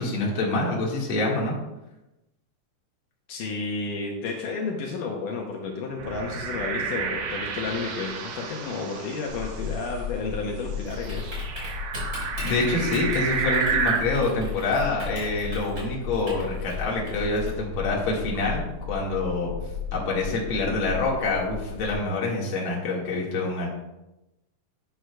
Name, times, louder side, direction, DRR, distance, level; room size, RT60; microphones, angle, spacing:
voice 1, 0.0-1.5 12.4-19.5 19.9-23.7, left 2 dB, 45° left, -3 dB, 2.2 m, -26 dB
voice 2, 3.3-11.4, left 4 dB, 75° left, 0 dB, 2.4 m, -31 dB
sound 1, 6.0-9.9 10.8-14.0, right 6 dB, 80° right, 2.8 m, -30 dB
Typing, 9.3-21.9, left 5 dB, 25° right, 3.8 m, -34 dB
11.0 x 9.0 x 2.3 m, 0.96 s
omnidirectional pair, 4.0 m